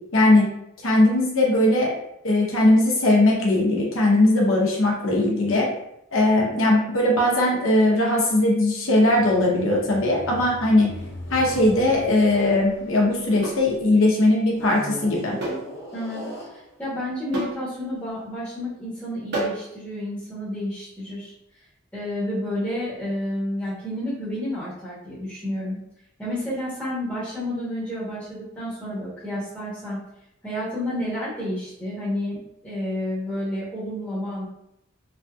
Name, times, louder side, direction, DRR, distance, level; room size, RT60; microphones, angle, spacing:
voice 1, 0.1-0.5 0.8-1.9 2.2-5.7 6.1-10.9 11.3-15.4, left 1 dB, 80° left, -2 dB, 0.9 m, -19 dB
sound 1, 9.1-13.8 14.5-17.0 17.7-17.9, left 1 dB, 55° left, 1.0 m, -39 dB
sound 2, 11.5-11.7 13.4-13.7 15.4-15.7 16.0-16.1 17.3-17.6 19.3-19.7, right 1 dB, 55° right, 0.9 m, -29 dB
voice 2, 15.9-21.3 21.9-25.8 26.2-30.0 30.4-32.4 32.6-34.5, left 1 dB, 10° left, -10 dB, 0.9 m, -30 dB
3.2 x 2.7 x 2.3 m, 0.79 s
head